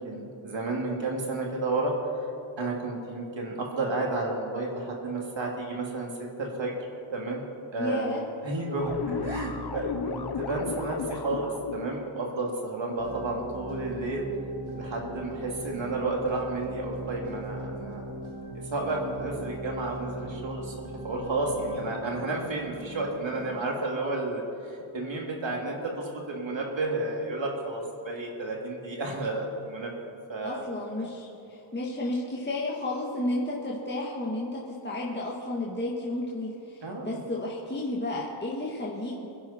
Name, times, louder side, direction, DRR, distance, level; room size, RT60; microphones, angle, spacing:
voice 1, 0.0-1.9 2.6-6.1 6.4-6.8 7.1-7.4 7.7-8.1 8.4-14.2 14.7-18.1 18.7-20.7 21.0-29.9 30.3-30.7 36.8-37.1, right 2 dB, 60° right, 0 dB, 2.8 m, -31 dB
voice 2, 7.8-8.2 25.2-25.5 30.4-39.3, left 1 dB, 20° left, -4 dB, 1.8 m, -32 dB
sound 1, 8.8-11.9, left 6 dB, 50° left, 0.9 m, -34 dB
sound 2, 13.0-23.7, right 1 dB, 85° right, 1.9 m, -40 dB
26.5 x 11.0 x 4.4 m, 2.8 s
wide cardioid pair, 125°, 50 cm